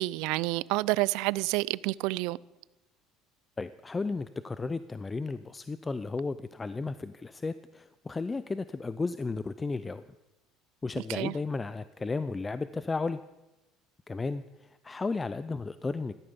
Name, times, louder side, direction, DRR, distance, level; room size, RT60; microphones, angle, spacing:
voice 1, 0.0-2.4 11.1-11.3, right 20 dB, 75° right, 0.4 m, -29 dB
voice 2, 3.6-10.0 10.8-13.2 14.1-16.1, left 3 dB, 15° left, 0.4 m, -34 dB
14.5 x 12.5 x 6.9 m
cardioid pair, 135°, 0 cm